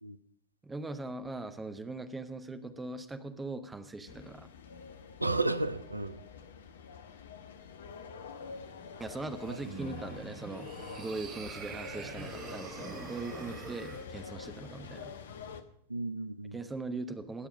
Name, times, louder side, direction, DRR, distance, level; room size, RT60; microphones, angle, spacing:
voice 1, 0.6-4.5 9.0-10.7 11.0-15.1 16.5-17.5, right 3 dB, 10° right, 10 dB, 1.1 m, -40 dB
sound 1, 4.1-15.6, left 6 dB, 65° left, 1.0 m, -47 dB
voice 2, 5.2-6.3 9.5-9.6 15.9-16.6, right 2 dB, 85° right, 14 dB, 0.6 m, -33 dB
sound 2, 9.3-14.1, right 6 dB, 30° right, 1.2 m, -45 dB
20.0 x 7.1 x 5.2 m, 0.68 s
figure-of-eight pair, 90°, 0 cm